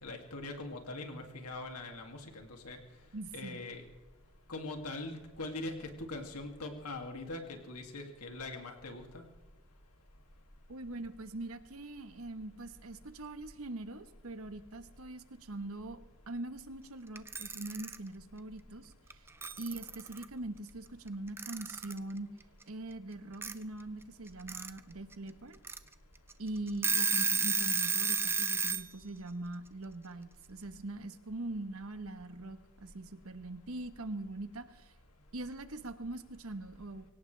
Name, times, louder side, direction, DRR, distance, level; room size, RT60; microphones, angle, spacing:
voice 1, 0.0-2.8 3.3-3.8 4.5-9.2, left 2 dB, 90° left, 3 dB, 2.4 m, -42 dB
voice 2, 3.1-3.6 10.7-19.2 19.6-22.3 22.7-25.6 26.4-34.9 35.3-37.1, right 2 dB, 70° right, 10 dB, 1.1 m, -42 dB
Alarm / Clock, 17.2-18.0 19.1-19.2 19.4-20.2 21.4-22.0 23.4-23.5 24.3-24.7 25.1-25.2 25.6-25.8 26.3-26.4 26.7-28.8, right 5 dB, 10° right, 0.4 m, -31 dB
23.5 x 17.5 x 3.3 m, 1.1 s
head